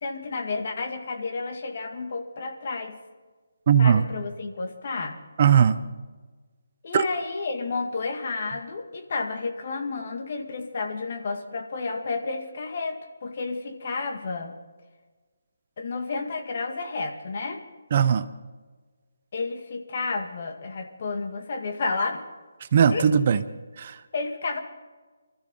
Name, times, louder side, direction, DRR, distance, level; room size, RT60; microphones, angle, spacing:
voice 1, 0.0-3.0 3.8-5.2 6.8-14.5 15.8-17.6 19.3-22.2 22.9-23.1 24.1-24.6, left 3 dB, 45° left, 4 dB, 2.1 m, -31 dB
voice 2, 3.7-4.0 5.4-5.8 6.9-7.0 17.9-18.3 22.7-23.4 23.8-24.0, right 7 dB, 40° right, 12 dB, 0.7 m, -19 dB
24.0 x 13.5 x 4.0 m, 1.4 s
figure-of-eight pair, 155°, 0 cm